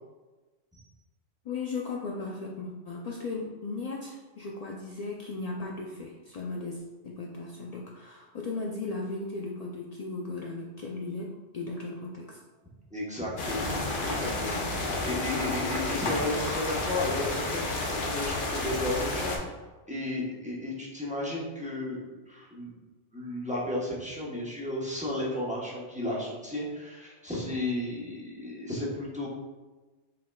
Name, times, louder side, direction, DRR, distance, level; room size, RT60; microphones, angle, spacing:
voice 1, 1.4-12.4, left 3 dB, 70° left, -2 dB, 0.3 m, -36 dB
voice 2, 12.9-14.7 15.0-19.4 19.9-22.7 23.1-29.3, left 1 dB, 5° right, -5 dB, 0.8 m, -33 dB
sound 1, 13.4-19.4, left 2 dB, 50° left, 0.8 m, -31 dB
5.6 x 3.6 x 2.2 m, 1.2 s
omnidirectional pair, 1.2 m